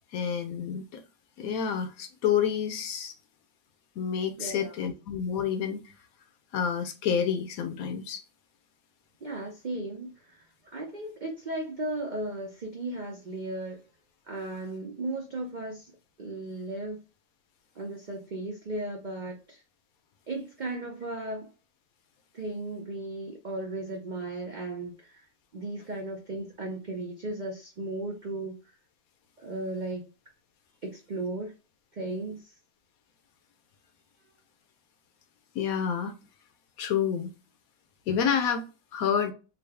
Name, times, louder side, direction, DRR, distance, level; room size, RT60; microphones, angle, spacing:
voice 1, 0.1-1.0 1.4-3.1 4.0-5.8 6.5-8.2 35.5-36.1 36.8-37.3 38.1-39.3, left 7 dB, 70° left, 1.0 m, -29 dB
voice 2, 4.4-4.8 9.2-13.8 14.3-15.9 16.2-17.0 17.8-19.6 20.3-21.5 22.3-25.2 25.5-28.6 29.4-30.0 30.8-31.5 31.9-32.5, right 2 dB, 80° right, 0.4 m, -36 dB
3.8 x 2.3 x 3.3 m
omnidirectional pair, 1.7 m